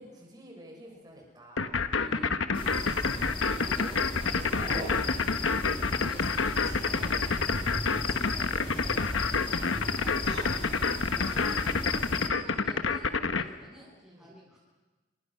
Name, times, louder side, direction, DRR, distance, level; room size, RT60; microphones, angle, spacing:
voice 1, 0.0-2.4 2.9-5.7 11.2-11.5 14.1-14.3, equal, 20° right, 0 dB, 6.1 m, -51 dB
sound 1, 0.8-1.0 1.4-1.5 1.8-1.9 2.5-3.2 3.6-3.9 4.5-5.2 6.5-7.3 8.5-9.1 10.1-10.9 11.5-12.1, right 2 dB, 60° right, 7.7 m, -43 dB
sound 2, 1.6-13.4, left 4 dB, 90° left, 1.2 m, -28 dB
voice 2, 2.0-2.4 3.6-4.8 6.0-7.3 7.9-9.1 9.4-11.1 11.8-13.0 13.4-14.6, equal, 5° right, -6 dB, 7.4 m, -50 dB
sound 3, 2.5-12.3, left 2 dB, 25° left, 2.1 m, -36 dB
28.0 x 23.0 x 5.7 m, 1.2 s
head